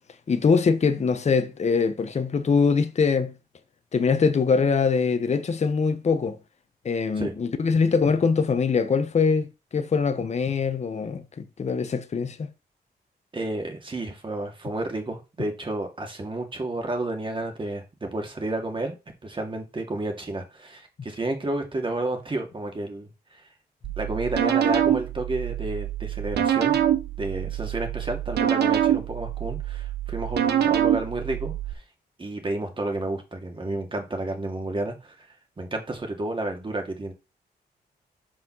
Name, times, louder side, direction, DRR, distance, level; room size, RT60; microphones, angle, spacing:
voice 1, 0.3-3.3 3.9-6.4 6.8-9.5 9.7-12.5, left 5 dB, 40° left, 1.0 m, -23 dB
voice 2, 13.3-19.0 19.2-23.4 24.0-26.8 27.2-31.8 32.2-35.3 35.6-37.1, right 2 dB, 30° right, 2.4 m, -31 dB
sound 1, 23.8-31.7, right 11 dB, 85° right, 1.0 m, -25 dB
5.8 x 5.1 x 6.1 m
cardioid pair, 90°, 17 cm